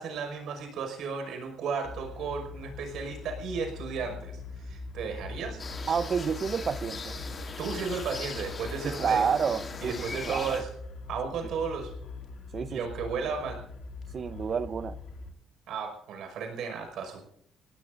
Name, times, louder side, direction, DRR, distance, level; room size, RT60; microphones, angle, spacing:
voice 1, 0.0-5.6 7.6-9.2 9.8-10.7 11.1-11.9 12.7-13.6 15.7-17.2, right 5 dB, 75° right, 4 dB, 5.6 m, -34 dB
sound 1, 1.8-15.3, left 3 dB, 60° left, 4.6 m, -42 dB
sound 2, 5.6-10.6, left 4 dB, 30° left, 2.5 m, -40 dB
voice 2, 5.9-7.2 8.8-10.5 12.5-12.8 14.1-15.0, right 6 dB, 40° right, 13 dB, 0.9 m, -29 dB
29.5 x 17.5 x 2.6 m, 0.70 s
cardioid pair, 140°, 0 cm